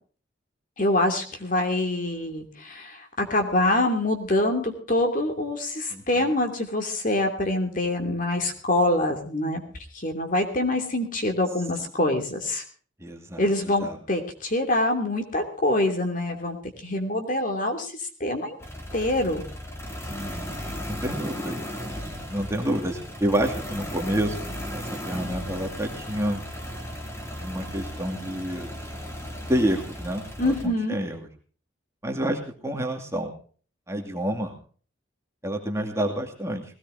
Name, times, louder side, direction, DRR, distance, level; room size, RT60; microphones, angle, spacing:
voice 1, 0.8-9.6 9.9-12.6 13.4-16.6 16.8-17.9 18.2-18.6 18.9-19.4 30.4-31.0, left 1 dB, 45° left, 4 dB, 2.9 m, -25 dB
voice 2, 5.9-6.3 13.0-14.0 20.1-20.6 20.9-21.6 22.3-26.4 27.4-28.7 29.5-31.3 32.0-33.3 33.9-34.5 35.4-36.6, right 1 dB, 15° right, 2 dB, 2.4 m, -29 dB
sound 1, 18.6-30.7, equal, 15° left, 2.6 m, -36 dB
19.5 x 18.0 x 2.7 m, 0.42 s
head